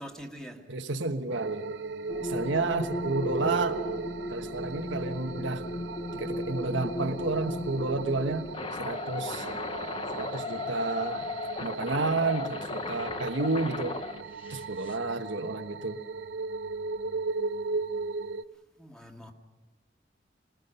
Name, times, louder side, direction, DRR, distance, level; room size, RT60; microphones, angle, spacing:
voice 1, 0.0-0.7 18.8-19.3, equal, 5° left, 1.7 m, -43 dB
voice 2, 0.7-1.7 2.2-3.8 4.3-5.6 6.1-8.5 8.8-9.5 10.1-11.3 11.6-14.0 14.5-16.0, right 3 dB, 90° right, 1.3 m, -31 dB
sound 1, 1.3-18.4, right 4 dB, 70° right, 0.6 m, -38 dB
sound 2, 2.1-15.0, left 2 dB, 30° left, 0.7 m, -36 dB
25.5 x 19.5 x 5.6 m
head